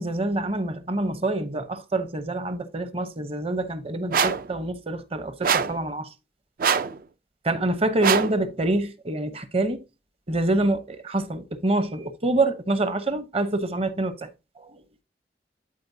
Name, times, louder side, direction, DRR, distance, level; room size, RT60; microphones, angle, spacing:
voice 1, 0.0-6.1 7.4-9.8 10.3-14.3 14.6-14.8, right 2 dB, 35° right, 0.8 m, -26 dB
sound 1, 4.1-4.5 5.4-5.8 6.6-7.0 8.0-8.4, right 6 dB, 50° right, 0.4 m, -23 dB
11.5 x 4.2 x 2.7 m
head